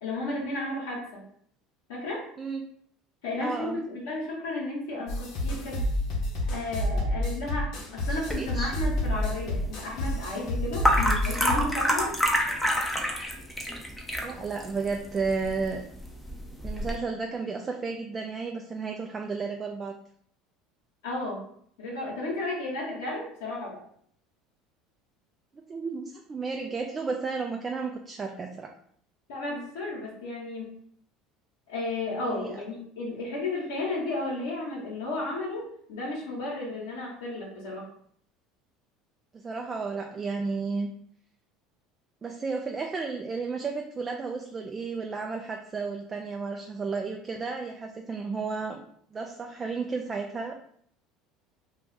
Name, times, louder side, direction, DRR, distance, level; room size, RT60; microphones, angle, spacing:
voice 1, 0.0-1.2 1.9-2.3 3.2-5.8 6.4-12.2 21.0-21.4 21.8-23.8 29.3-30.7 31.7-37.8, left 2 dB, 90° left, -6 dB, 1.0 m, -33 dB
voice 2, 3.4-3.8 8.4-8.7 14.2-15.9 16.6-19.9 25.7-28.7 32.3-32.6 39.3-40.9 42.2-48.8 49.1-50.5, right 4 dB, 30° right, 2 dB, 0.3 m, -33 dB
sound 1, 5.1-11.6, left 1 dB, 60° left, 0.9 m, -29 dB
sound 2, 8.3-17.0, equal, 5° left, 0.6 m, -29 dB
2.4 x 2.4 x 3.9 m, 0.64 s
supercardioid pair, 90°, 0 cm